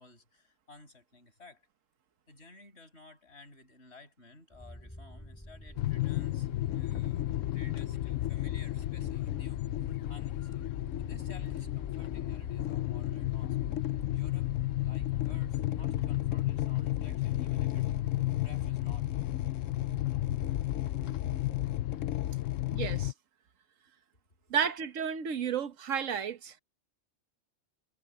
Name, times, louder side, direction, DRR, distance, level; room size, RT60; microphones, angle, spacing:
voice 1, 0.0-1.7 2.3-9.6 10.1-10.5 11.0-13.7 14.1-19.3, left 2 dB, 55° left, 7.9 m, -55 dB
sound 1, 4.5-22.3, equal, 10° left, 5.4 m, -48 dB
sound 2, 5.8-23.1, left 15 dB, 80° left, 0.9 m, -32 dB
voice 2, 22.7-23.1 24.5-26.6, right 7 dB, 80° right, 1.5 m, -32 dB
omnidirectional pair, 1.3 m